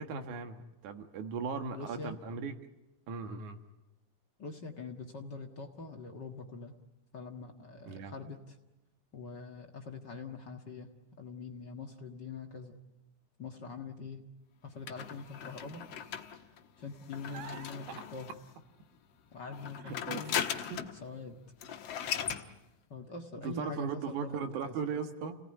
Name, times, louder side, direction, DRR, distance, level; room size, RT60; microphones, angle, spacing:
voice 1, 0.0-2.5 3.1-3.6 7.9-8.1 17.3-17.7 18.0-18.1 19.8-20.4 20.7-20.9 23.4-25.4, right 5 dB, 80° right, 7 dB, 3.0 m, -38 dB
voice 2, 1.7-2.2 4.4-6.8 7.1-8.6 9.1-10.9 11.2-12.8 13.4-14.2 14.6-16.1 16.4-18.3 19.3-20.4 21.0-21.4 22.4-22.6 22.9-24.8, left 4 dB, 40° left, 3 dB, 1.9 m, -44 dB
sound 1, 14.9-18.5 19.5-21.0 21.3-21.4 21.6-22.5, left 8 dB, 60° left, 2.1 m, -38 dB
29.5 x 18.5 x 9.9 m, 0.95 s
omnidirectional pair, 3.4 m